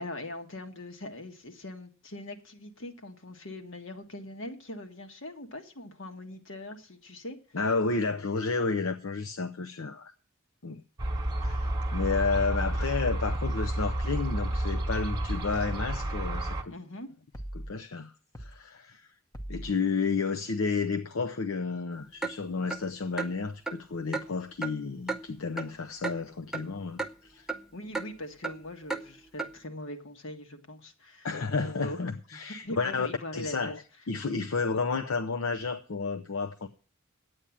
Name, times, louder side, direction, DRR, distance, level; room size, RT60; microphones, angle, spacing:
voice 1, 0.0-7.4 16.7-17.1 27.7-32.0 32.3-33.7, left 1 dB, 65° left, 1.6 m, -41 dB
voice 2, 7.5-10.1 10.6-10.8 11.4-16.7 17.5-18.1 18.4-19.1 19.5-27.5 31.2-33.1 33.3-33.8 34.1-36.7, left 4 dB, 80° left, 0.7 m, -31 dB
sound 1, 11.0-16.6, right 1 dB, 20° right, 1.2 m, -30 dB
sound 2, 13.3-13.7 14.3-14.6 15.3-15.7 16.3-16.6 17.3-17.7 18.3-18.6 19.3-19.7, equal, 15° left, 0.9 m, -40 dB
Clock, 22.2-22.3 22.7-22.8 23.2-23.3 23.7-23.8 24.1-24.3 24.6-24.7 25.1-25.2 25.6-25.7 26.0-26.2 26.5-26.6 27.0-27.1 27.5-27.6 27.9-28.1 28.4-28.6 28.9-29.0 29.4-29.5, right 3 dB, 5° right, 0.6 m, -32 dB
10.0 x 8.8 x 7.3 m
head